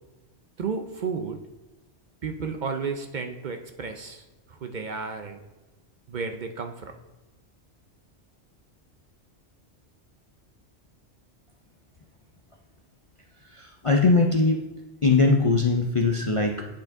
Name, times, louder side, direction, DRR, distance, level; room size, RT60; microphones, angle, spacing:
voice 1, 0.6-1.4 2.2-5.4 6.1-6.9, right 5 dB, 50° right, 6 dB, 0.6 m, -32 dB
voice 2, 13.5-14.6 15.0-16.7, left 3 dB, 45° left, 3 dB, 0.4 m, -21 dB
8.7 x 5.2 x 3.6 m, 1.1 s
omnidirectional pair, 1.2 m